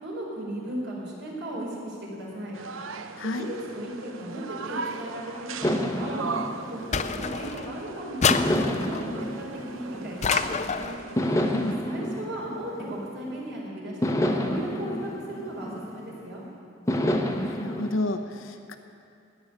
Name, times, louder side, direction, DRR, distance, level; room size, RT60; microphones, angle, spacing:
voice 1, 0.0-2.6 3.2-6.2 6.5-10.9 11.6-16.4, right 1 dB, 60° right, -3 dB, 4.5 m, -36 dB
sound 1, 2.5-11.8, right 4 dB, 80° right, 0.8 m, -38 dB
voice 2, 3.2-3.5 11.5-11.7 17.4-18.8, left 2 dB, 80° left, 7 dB, 0.9 m, -31 dB
sound 2, 5.6-7.7 8.3-10.6 11.2-13.4 14.0-16.3 16.9-18.0, left 1 dB, 15° left, 0.9 m, -29 dB
sound 3, 6.9-7.7 8.2-9.1 10.2-11.0, left 6 dB, 35° left, 0.5 m, -27 dB
17.0 x 7.1 x 10.0 m, 2.6 s
head